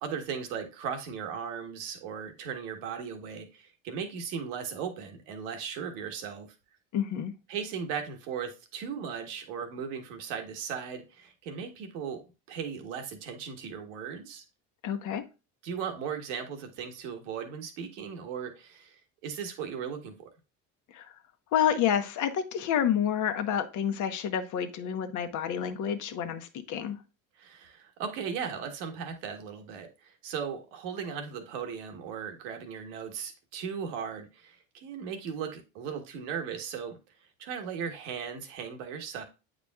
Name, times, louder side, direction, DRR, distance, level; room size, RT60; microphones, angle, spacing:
voice 1, 0.0-6.5 7.5-12.2 12.5-14.4 15.6-20.3 27.4-37.0 37.4-39.2, right 7 dB, 80° right, 1.4 m, -37 dB
voice 2, 6.9-7.3 14.8-15.2 20.9-21.1 21.5-27.0, left 9 dB, 50° left, 1.0 m, -29 dB
8.5 x 5.1 x 2.4 m
supercardioid pair, 100°, 38 cm